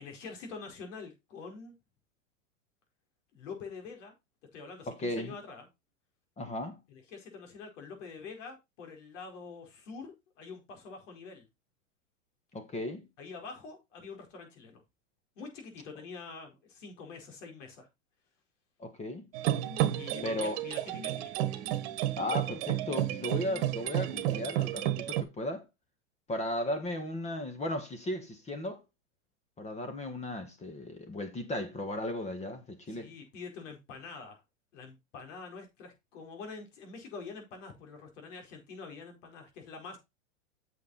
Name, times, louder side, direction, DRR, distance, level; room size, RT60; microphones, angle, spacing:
voice 1, 0.0-1.7 3.3-4.1 4.5-5.7 6.9-11.5 13.2-14.8 15.4-17.9 19.9-21.3 32.9-34.4 34.7-40.0, left 4 dB, 65° left, 4.6 m, -46 dB
voice 2, 4.9-5.4 6.4-6.8 12.5-13.0 18.8-19.3 20.2-20.6 22.2-25.6 26.3-28.8 29.6-33.1, left 1 dB, 15° left, 1.6 m, -36 dB
sound 1, 19.3-25.2, right 13 dB, 50° right, 1.5 m, -31 dB
8.4 x 6.7 x 4.1 m
hypercardioid pair, 125°, 40 cm